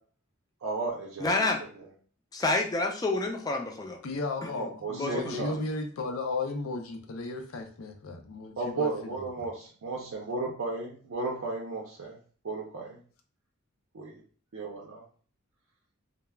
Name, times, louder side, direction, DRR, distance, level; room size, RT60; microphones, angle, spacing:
voice 1, 0.6-1.5 1.7-1.8 4.6-5.6 8.6-12.2 12.4-13.0 13.9-14.2 14.5-15.0, right 3 dB, 85° right, -2 dB, 0.5 m, -34 dB
voice 2, 1.2-1.6 2.3-4.0 5.0-5.4, left 2 dB, 20° left, 2 dB, 0.3 m, -28 dB
voice 3, 4.0-9.2, left 3 dB, 85° left, 5 dB, 0.5 m, -35 dB
2.2 x 2.0 x 3.2 m, 0.43 s
head